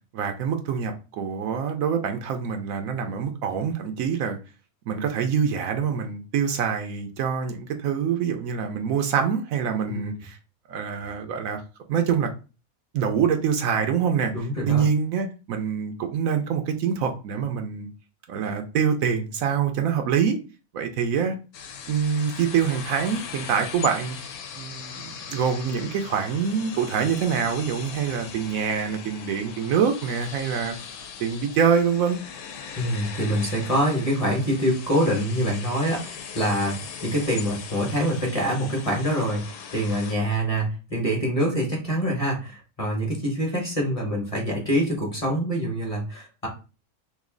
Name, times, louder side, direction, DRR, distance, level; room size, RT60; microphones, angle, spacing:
voice 1, 0.1-4.4 4.9-10.4 10.7-11.6 11.9-12.3 12.9-14.3 14.7-17.9 18.3-20.4 20.7-21.4 21.9-24.2 24.5-30.8 31.2-32.2, right 7 dB, 75° right, 5 dB, 0.9 m, -25 dB
voice 2, 14.3-14.8 32.8-36.7 37.0-46.5, equal, 25° left, -1 dB, 1.0 m, -25 dB
sound 1, 21.5-40.1, left 7 dB, 80° left, 1.1 m, -39 dB
3.1 x 2.6 x 3.7 m, 0.32 s
omnidirectional pair, 1.5 m